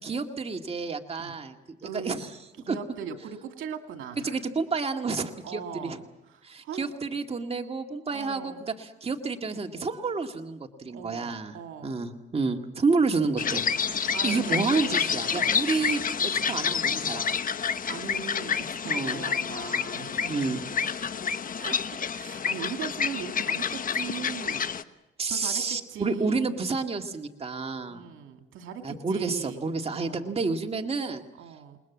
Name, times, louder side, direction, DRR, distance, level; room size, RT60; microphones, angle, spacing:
voice 1, 0.0-2.3 2.7-2.8 4.2-6.0 6.4-11.6 11.8-17.3 18.9-19.2 20.3-20.6 25.2-28.1 28.8-31.2, right 4 dB, 30° right, 4 dB, 2.2 m, -30 dB
voice 2, 1.8-2.2 2.6-4.4 5.4-6.9 8.1-8.6 10.9-12.0 14.1-15.1 17.9-21.1 21.6-24.7 25.3-26.4 27.9-30.4 31.4-31.8, right 7 dB, 80° right, 6 dB, 2.6 m, -40 dB
sound 1, 13.4-24.8, left 6 dB, 45° left, 1.2 m, -29 dB
28.5 x 20.5 x 7.4 m, 0.99 s
cardioid pair, 90°, 20 cm